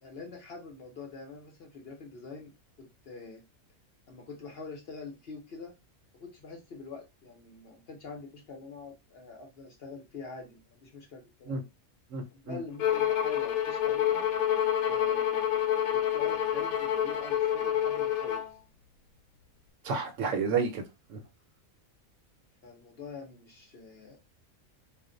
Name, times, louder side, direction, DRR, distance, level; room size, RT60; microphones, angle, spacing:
voice 1, 0.0-3.4 4.1-5.7 6.1-11.7 12.3-14.3 14.9-15.5 15.9-18.5 22.6-24.2, left 4 dB, 55° left, 0.8 m, -45 dB
voice 2, 12.1-12.6 19.8-20.8 21.1-21.2, right 5 dB, 70° right, 0.9 m, -30 dB
Bowed string instrument, 12.8-18.5, left 10 dB, 85° left, 1.1 m, -28 dB
2.5 x 2.2 x 3.7 m
omnidirectional pair, 1.5 m